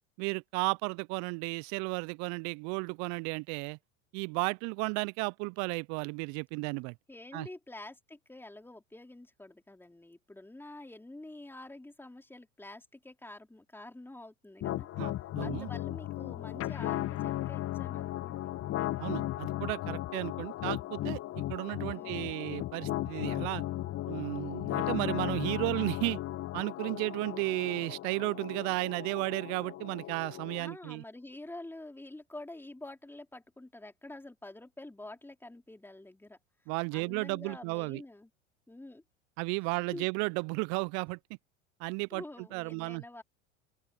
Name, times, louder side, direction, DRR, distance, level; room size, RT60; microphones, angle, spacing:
voice 1, 0.2-3.8 4.1-6.9 7.3-7.5 15.0-15.7 19.0-21.2 21.5-23.6 24.1-26.2 26.5-31.0 36.7-38.0 39.4-41.2 41.8-42.2 42.5-43.0, right 34 dB, 45° right, 0.8 m, -34 dB
voice 2, 7.1-14.9 15.4-18.5 21.8-22.4 30.6-36.4 36.9-38.3 38.7-39.0 39.9-40.1 42.1-43.2, left 2 dB, 5° left, 4.4 m, -47 dB
sound 1, 14.6-30.6, left 14 dB, 35° left, 1.4 m, -36 dB
open air
figure-of-eight pair, 80°, 38 cm